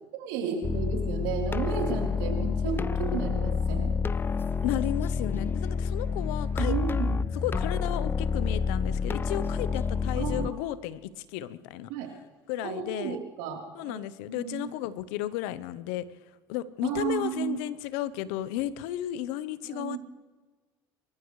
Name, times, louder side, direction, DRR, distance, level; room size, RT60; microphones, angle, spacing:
voice 1, 0.1-3.9 6.6-7.2 10.2-10.5 11.9-12.2 12.6-14.0 14.3-14.7 16.8-17.6 19.7-20.0, right 7 dB, 85° right, 1 dB, 3.6 m, -33 dB
sound 1, 0.6-10.5, left 5 dB, 20° left, 0.5 m, -28 dB
voice 2, 4.6-6.7 7.4-11.9 12.5-13.2 13.7-16.1 16.5-20.0, left 13 dB, 85° left, 16 dB, 0.8 m, -33 dB
25.5 x 14.5 x 3.2 m, 1.3 s
supercardioid pair, 85°, 10 cm